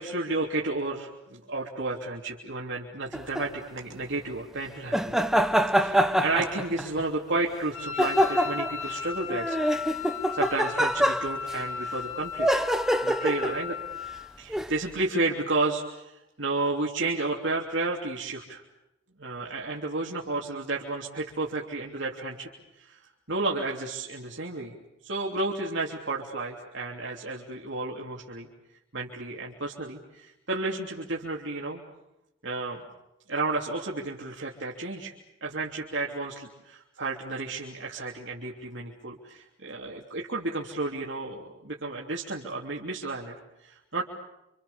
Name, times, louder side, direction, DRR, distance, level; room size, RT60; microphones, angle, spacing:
voice 1, 0.0-5.1 5.8-9.6 10.3-12.6 13.0-13.8 14.4-18.6 19.2-22.5 22.8-23.0 23.3-24.7 25.0-28.5 28.9-31.8 32.4-32.8 33.3-35.1 35.4-43.4 43.6-44.0, right 2 dB, 60° right, -2 dB, 3.2 m, -32 dB
sound 1, 3.1-3.5 4.9-7.0 8.0-8.8 9.3-11.5 12.4-13.6 14.5-14.7, equal, ahead, 1.1 m, -25 dB
Wind instrument woodwind instrument, 7.7-14.3, left 7 dB, 85° left, 4.1 m, -36 dB
28.5 x 27.5 x 7.1 m, 0.92 s
head